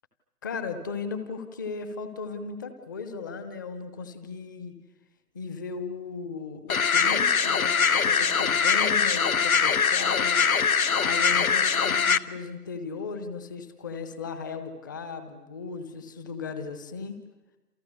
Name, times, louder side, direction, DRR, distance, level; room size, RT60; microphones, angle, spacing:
voice 1, 0.4-4.7 5.3-10.4 11.0-17.2, left 5 dB, 10° left, 10 dB, 1.0 m, -36 dB
sound 1, 6.7-12.2, left 6 dB, 55° left, 1.1 m, -22 dB
29.0 x 28.5 x 6.8 m, 1.1 s
figure-of-eight pair, 145°, 49 cm